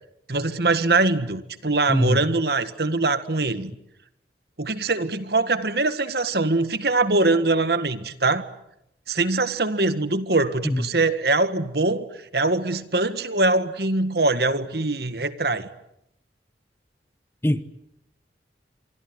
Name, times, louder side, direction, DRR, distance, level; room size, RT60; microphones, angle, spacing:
voice 1, 0.3-3.7 4.6-8.5 9.1-12.1 12.3-15.7, right 2 dB, 60° right, 12 dB, 1.7 m, -22 dB
voice 2, 1.9-2.2 10.6-10.8 17.4-17.6, equal, 15° left, 13 dB, 1.0 m, -22 dB
25.5 x 24.0 x 9.4 m, 0.83 s
head